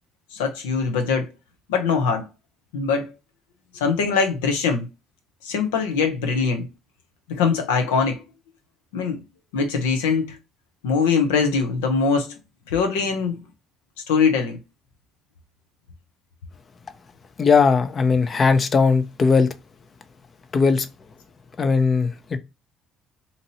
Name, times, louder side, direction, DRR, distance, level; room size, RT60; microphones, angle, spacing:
voice 1, 0.3-1.3 1.7-2.3 2.7-3.1 3.7-4.9 5.4-6.7 7.3-8.2 8.9-9.2 9.5-10.4 10.8-12.3 12.7-13.4 14.1-14.6, left 5 dB, 90° left, 0.7 m, -22 dB
voice 2, 17.4-19.5 20.5-20.9 21.6-22.4, left 5 dB, 45° left, 0.6 m, -18 dB
2.8 x 2.6 x 2.9 m
hypercardioid pair, 60°, 0 cm